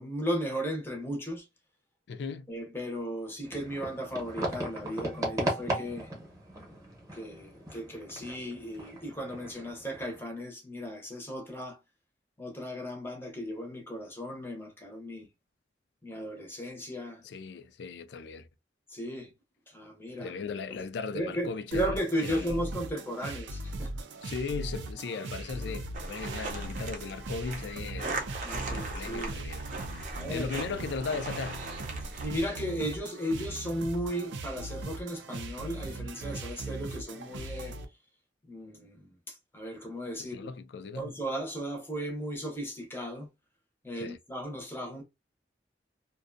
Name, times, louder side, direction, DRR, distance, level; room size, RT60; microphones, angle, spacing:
voice 1, 0.0-1.5 2.5-6.1 7.1-11.8 12.4-15.3 16.0-17.2 18.9-19.3 19.7-20.3 20.7-20.8 21.1-24.1 28.4-29.3 30.2-30.5 32.0-37.8 38.5-40.5 40.9-43.3 43.8-45.0, equal, 10° left, 0.7 m, -35 dB
voice 2, 2.1-2.5 17.2-18.5 20.2-22.6 24.2-28.3 28.7-29.6 29.9-31.7 40.3-41.2 44.0-44.2, left 5 dB, 75° left, 0.4 m, -37 dB
sound 1, 3.4-10.2, right 1 dB, 20° right, 0.9 m, -37 dB
sound 2, 21.7-37.8, right 2 dB, 90° right, 0.5 m, -40 dB
sound 3, 25.9-32.4, right 2 dB, 45° right, 0.6 m, -38 dB
2.6 x 2.2 x 2.5 m
head